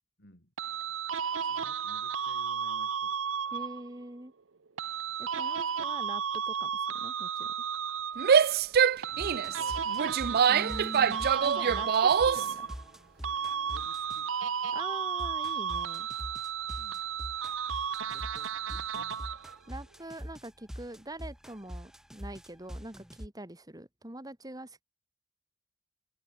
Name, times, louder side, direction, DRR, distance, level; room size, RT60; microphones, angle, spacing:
voice 1, 0.2-0.5 1.4-3.2 9.1-10.2 13.7-14.3 16.8-17.0 18.0-18.9, left 1 dB, 55° left, 7.6 m, -56 dB
sound 1, 0.6-3.9 4.8-8.6 9.0-13.0 13.2-19.6, right 7 dB, 70° right, 0.8 m, -33 dB
voice 2, 3.5-4.3 5.2-7.5 10.5-12.7 14.7-16.1 19.7-24.8, right 1 dB, 20° right, 2.7 m, -44 dB
Female speech woman speaking / Yell, 8.2-12.5, right 7 dB, 50° right, 0.4 m, -25 dB
sound 2, 9.2-14.4 15.2-23.3, equal, 5° right, 2.4 m, -44 dB
head